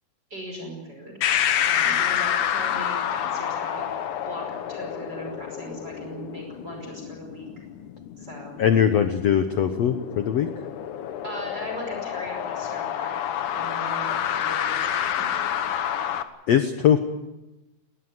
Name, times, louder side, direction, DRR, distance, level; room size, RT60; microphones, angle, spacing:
voice 1, 0.3-1.2 1.6-3.9 4.3-7.5 8.2-8.6 11.2-15.7, equal, 25° right, 2 dB, 5.8 m, -38 dB
sound 1, 1.2-16.2, left 10 dB, 65° left, 2.2 m, -28 dB
voice 2, 8.6-10.5 16.5-17.0, left 9 dB, 85° left, 8 dB, 1.4 m, -21 dB
20.5 x 19.5 x 9.7 m, 1.0 s
omnidirectional pair, 4.6 m